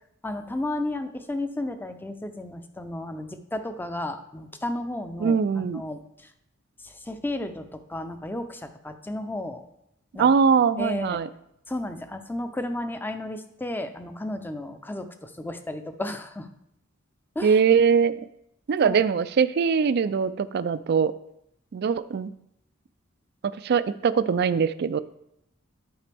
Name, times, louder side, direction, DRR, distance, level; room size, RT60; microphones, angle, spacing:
voice 1, 0.2-6.0 6.8-9.6 10.1-10.3 10.8-11.2 11.7-16.5 17.4-17.6 18.8-19.1, left 1 dB, 10° left, 8 dB, 0.5 m, -33 dB
voice 2, 5.2-5.8 10.2-11.3 17.4-18.2 18.7-21.1 21.7-22.3 23.4-25.0, right 6 dB, 55° right, 15 dB, 0.4 m, -22 dB
11.5 x 5.0 x 3.4 m, 0.79 s
head